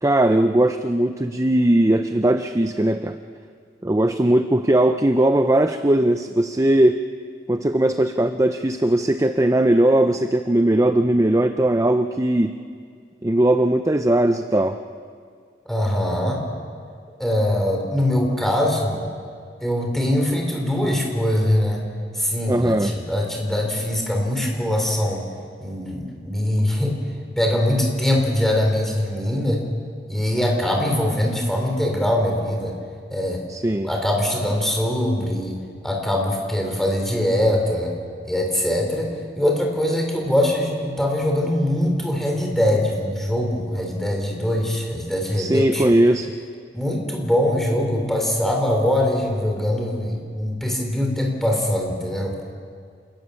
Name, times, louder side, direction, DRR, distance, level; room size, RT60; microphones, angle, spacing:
voice 1, 0.0-3.2 3.8-7.0 7.5-12.6 13.2-14.8 22.5-22.9 33.5-33.9 45.4-46.3, right 1 dB, 15° right, 8 dB, 0.5 m, -19 dB
voice 2, 15.7-16.4 17.2-19.0 19.6-21.9 22.1-25.2 25.6-27.0 27.4-29.7 30.1-32.8 33.1-33.4 33.8-35.6 35.8-37.9 38.2-46.0 46.7-52.4, left 1 dB, ahead, 1 dB, 3.8 m, -22 dB
29.0 x 18.0 x 7.1 m, 2.2 s
head